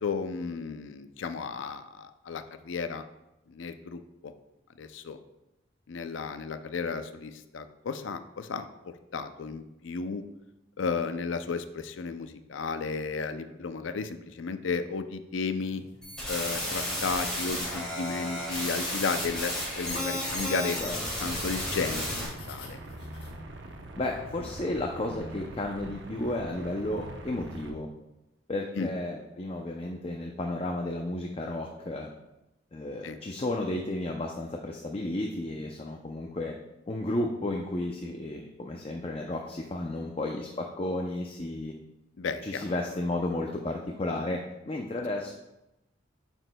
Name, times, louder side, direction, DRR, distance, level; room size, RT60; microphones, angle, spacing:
voice 1, 0.0-3.0 3.5-4.3 4.8-5.2 5.9-8.7 9.1-10.2 10.8-15.8 16.3-20.8 21.2-22.8 28.8-28.9 33.0-33.2 42.2-42.6, left 5 dB, 80° left, 10 dB, 0.5 m, -33 dB
sound 1, 15.6-23.4, left 2 dB, 60° left, 1.4 m, -50 dB
sound 2, 16.0-22.3, equal, 5° left, 2.6 m, -33 dB
sound 3, 21.3-27.7, right 1 dB, 70° right, 0.7 m, -43 dB
voice 2, 24.0-27.9 28.5-32.1 32.7-36.5 36.9-41.7 42.4-45.3, left 1 dB, 30° left, 2 dB, 0.5 m, -33 dB
9.1 x 6.1 x 2.2 m, 0.93 s
head